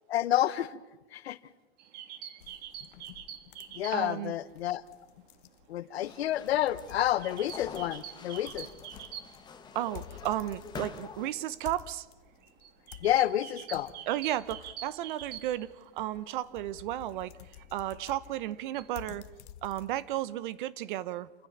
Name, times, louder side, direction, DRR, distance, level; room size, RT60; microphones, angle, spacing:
voice 1, 0.1-0.8 1.1-1.4 3.7-4.8 5.7-8.7 13.0-13.9, left 12 dB, 70° left, 15 dB, 1.2 m, -29 dB
sound 1, 1.8-4.3 4.5-4.6 4.9-9.8 10.1-10.2 10.4-10.7 11.2-16.2 16.6-18.9, right 10 dB, 30° right, 1.6 m, -46 dB
sound 2, 2.4-20.3, left 12 dB, 50° left, 1.2 m, -52 dB
voice 2, 3.9-4.3 9.7-12.1 14.1-17.3 17.7-19.3 19.6-21.3, right 13 dB, 50° right, 17 dB, 0.9 m, -33 dB
sound 3, 6.0-11.3, left 6 dB, 15° left, 1.5 m, -47 dB
28.5 x 15.0 x 7.3 m, 1.2 s
hypercardioid pair, 145°, 32 cm